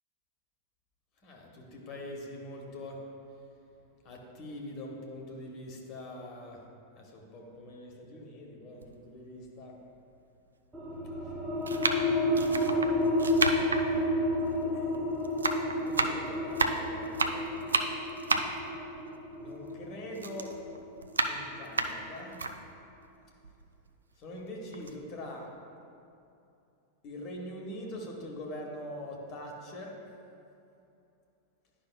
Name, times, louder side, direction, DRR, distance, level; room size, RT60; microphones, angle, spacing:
voice 1, 1.2-3.0 4.0-6.6 7.0-9.8 11.9-13.1 14.7-17.6 19.4-20.5 21.2-22.4 24.2-25.5 27.0-29.9, left 1 dB, 40° left, 0 dB, 1.2 m, -43 dB
sound 1, 8.8-8.9 9.8-9.9 10.9-11.1 11.6-15.0 15.2-19.8 20.2-22.5 23.0-23.1 23.4-24.4 24.7-24.9, right 3 dB, 75° right, 0.3 m, -31 dB
sound 2, 10.7-21.9, left 1 dB, 15° right, 1.1 m, -31 dB
11.0 x 5.6 x 2.2 m, 2.6 s
figure-of-eight pair, 90°, 0 cm